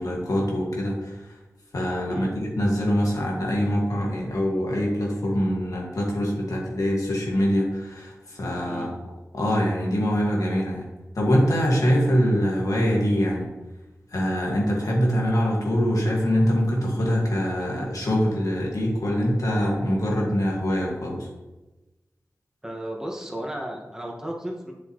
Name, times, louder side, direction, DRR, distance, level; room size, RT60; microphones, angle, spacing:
voice 1, 0.0-1.4 1.7-8.9 9.3-10.8 11.1-13.5 14.1-21.3, equal, 80° left, -3 dB, 2.2 m, -24 dB
voice 2, 22.6-24.7, right 1 dB, 10° right, -1 dB, 1.9 m, -34 dB
8.1 x 6.4 x 3.3 m, 1.1 s
cardioid pair, 45°, 6 cm